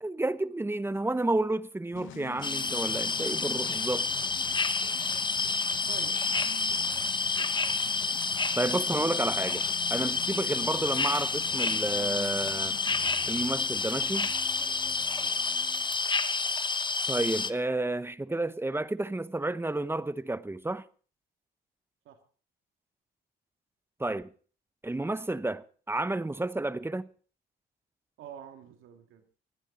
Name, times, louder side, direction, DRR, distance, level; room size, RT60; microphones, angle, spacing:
voice 1, 0.0-4.1 8.6-9.6 9.9-12.8 13.3-14.3 17.1-20.8 24.0-24.3 24.8-27.1, right 2 dB, 10° right, 1.0 m, -31 dB
sound 1, 1.9-13.3, left 13 dB, 80° left, 0.8 m, -46 dB
sound 2, 2.4-17.5, left 4 dB, 25° left, 1.0 m, -29 dB
voice 2, 5.9-6.4 8.5-8.7 14.6-15.3 22.1-22.2 28.2-29.2, right 9 dB, 90° right, 2.4 m, -48 dB
sound 3, 12.9-16.7, left 5 dB, 45° left, 1.9 m, -52 dB
25.5 x 10.0 x 4.0 m
cardioid pair, 90°, 20 cm